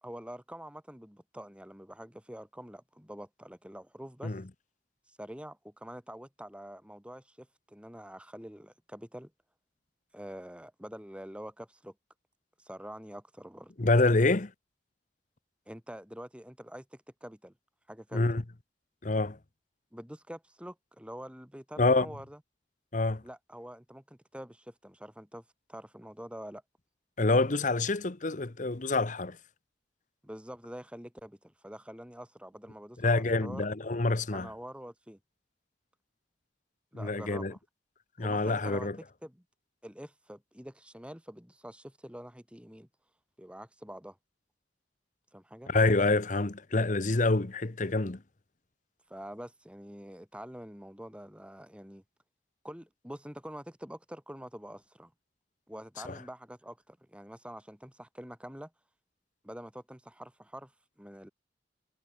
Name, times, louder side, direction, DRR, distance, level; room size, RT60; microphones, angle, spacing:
voice 1, 0.0-4.4 5.1-9.3 10.1-11.9 12.6-13.7 15.7-17.5 17.9-18.3 19.9-22.4 23.2-25.4 25.7-26.6 30.2-33.7 34.3-35.2 36.9-37.6 38.2-38.9 39.2-39.4 39.8-42.9 43.4-44.2 45.3-45.7 49.1-52.0 52.6-55.1 55.7-58.7 59.4-60.7 61.0-61.3, equal, 5° right, 2.8 m, -46 dB
voice 2, 13.8-14.5 18.1-18.4 19.0-19.4 21.8-22.1 22.9-23.2 27.2-29.4 33.0-34.5 36.9-37.5 38.2-39.0 45.7-48.2 56.0-56.2, left 2 dB, 45° left, 1.0 m, -27 dB
head